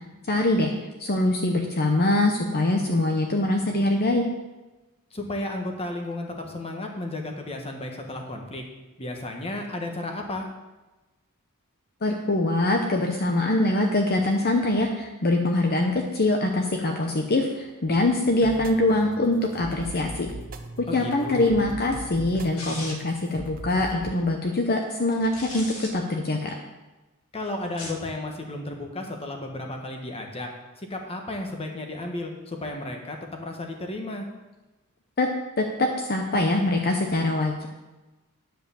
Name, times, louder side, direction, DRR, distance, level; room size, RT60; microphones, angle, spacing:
voice 1, 0.3-0.7 1.0-4.3 12.0-20.3 20.8-26.5 35.2-35.3 35.6-37.7, left 2 dB, 45° left, 2 dB, 0.9 m, -23 dB
voice 2, 5.1-8.6 9.0-10.5 20.9-21.6 27.3-30.5 30.8-34.3, left 2 dB, 25° left, 2 dB, 1.4 m, -33 dB
sound 1, 18.4-24.1, right 2 dB, 40° right, 0.8 m, -39 dB
sound 2, 22.6-23.2 25.1-25.9 27.6-28.1, left 2 dB, 70° left, 1.4 m, -37 dB
10.0 x 5.0 x 7.0 m, 1.1 s
head